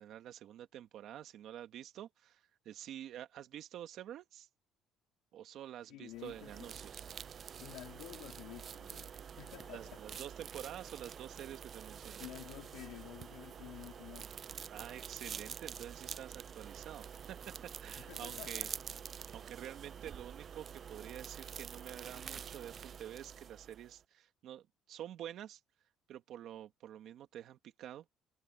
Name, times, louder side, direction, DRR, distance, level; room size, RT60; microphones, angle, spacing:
voice 1, 0.0-4.5 5.3-7.0 9.7-12.3 14.7-18.7 19.3-25.6 26.1-28.1, right 11 dB, 60° right, 1.7 m, -48 dB
voice 2, 5.9-6.7 7.6-10.1 12.2-14.4 18.0-18.8, left 16 dB, 90° left, 2.9 m, -51 dB
sound 1, 6.1-24.0, right 7 dB, 35° right, 0.3 m, -47 dB
cardioid pair, 140°, 0 cm